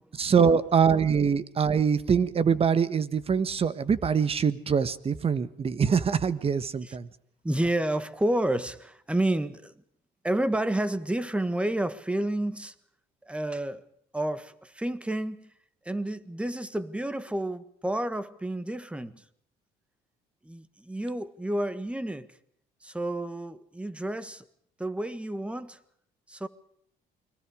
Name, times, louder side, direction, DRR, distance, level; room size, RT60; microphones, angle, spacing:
voice 1, 0.2-7.1, right 6 dB, 35° right, 1.4 m, -24 dB
voice 2, 7.4-9.7 10.2-12.7 13.2-13.8 14.1-15.5 15.8-19.2 20.4-22.3 22.8-24.4 24.8-25.8 26.3-26.5, right 1 dB, 5° right, 1.5 m, -30 dB
29.5 x 22.5 x 5.1 m
cardioid pair, 110°, 17 cm